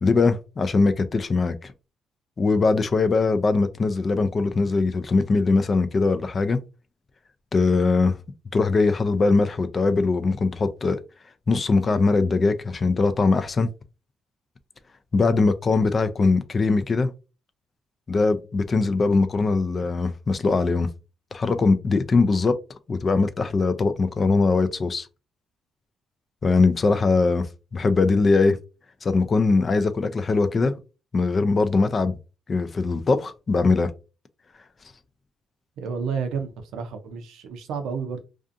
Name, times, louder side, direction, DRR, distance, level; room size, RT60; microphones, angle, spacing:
voice 1, 0.0-1.7 2.4-6.6 7.5-8.2 8.5-11.0 11.5-13.7 15.1-17.1 18.1-20.9 21.3-22.6 22.9-25.1 26.4-28.6 29.0-30.7 31.1-32.2 32.5-33.9, left 3 dB, 35° left, 0.3 m, -21 dB
voice 2, 35.8-38.2, right 6 dB, 85° right, 0.5 m, -31 dB
2.5 x 2.4 x 2.5 m
cardioid pair, 90°, 0 cm